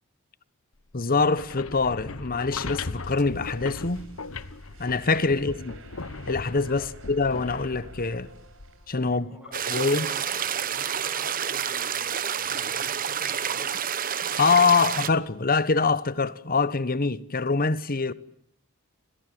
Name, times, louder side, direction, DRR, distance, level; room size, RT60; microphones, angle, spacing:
voice 1, 0.9-4.0 4.8-5.8 6.3-8.3 8.9-9.3 9.7-10.1 14.2-18.1, left 4 dB, 40° left, 1.1 m, -24 dB
sound 1, 1.2-9.1, left 3 dB, 65° left, 1.2 m, -38 dB
sound 2, 2.7-9.1, right 4 dB, 65° right, 6.5 m, -53 dB
voice 2, 9.1-13.8, equal, 5° right, 7.2 m, -49 dB
sound 3, 9.5-15.1, right 8 dB, 40° right, 1.1 m, -29 dB
30.0 x 21.5 x 9.2 m
head